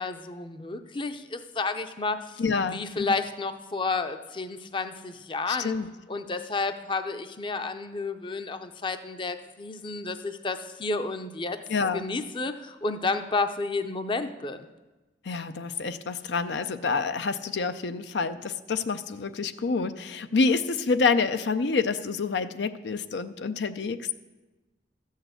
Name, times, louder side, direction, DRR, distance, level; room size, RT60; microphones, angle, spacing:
voice 1, 0.0-2.4 2.7-5.7 6.1-11.6 11.9-14.7, left 3 dB, 30° left, 9 dB, 0.6 m, -31 dB
voice 2, 2.4-3.2 5.5-5.9 11.7-12.0 15.2-24.1, left 4 dB, 75° left, 10 dB, 0.5 m, -27 dB
13.5 x 6.5 x 8.0 m, 1.1 s
head